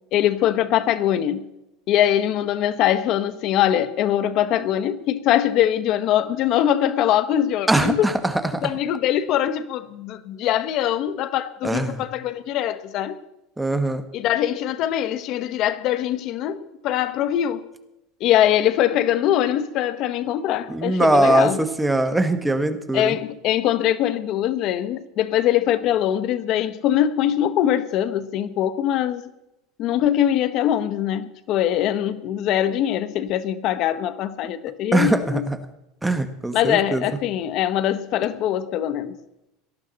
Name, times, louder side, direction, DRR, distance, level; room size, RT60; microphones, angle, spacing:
voice 1, 0.1-1.4 1.9-8.1 8.6-13.2 14.1-17.7 18.2-21.6 22.9-29.2 29.8-35.5 36.5-39.1, left 11 dB, 50° left, 0.9 m, -22 dB
voice 2, 7.7-8.7 11.6-12.0 13.6-14.0 20.7-23.2 34.9-35.6 36.0-37.0, right 2 dB, 5° right, 1.1 m, -21 dB
18.5 x 13.0 x 4.0 m
supercardioid pair, 130°, 0 cm